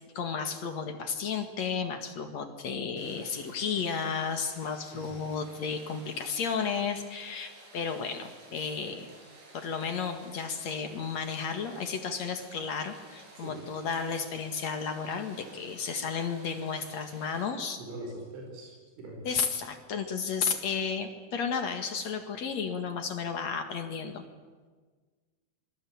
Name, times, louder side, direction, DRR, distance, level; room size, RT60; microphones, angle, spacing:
voice 1, 0.1-9.1 9.5-17.8 19.2-24.2, left 6 dB, 55° left, 6 dB, 2.1 m, -33 dB
Rain, 3.0-17.5, right 2 dB, 55° right, 7.4 m, -54 dB
voice 2, 17.8-19.2, right 1 dB, 80° right, 1 dB, 7.3 m, -42 dB
27.0 x 22.0 x 8.7 m, 1.4 s
omnidirectional pair, 5.5 m